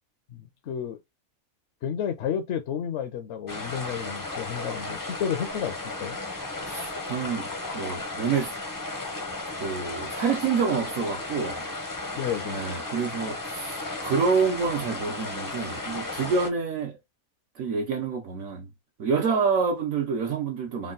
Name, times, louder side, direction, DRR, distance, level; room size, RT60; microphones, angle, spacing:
voice 1, 0.3-1.0 1.8-6.2 12.1-12.6, left 8 dB, 65° left, 0.8 m, -31 dB
sound 1, 3.5-16.5, left 2 dB, 25° left, 0.5 m, -34 dB
voice 2, 6.6-7.5 7.7-8.5 9.6-11.7 12.4-17.0 17.5-18.7 19.0-20.9, right 5 dB, 75° right, 1.2 m, -27 dB
3.5 x 2.3 x 3.8 m
omnidirectional pair, 1.5 m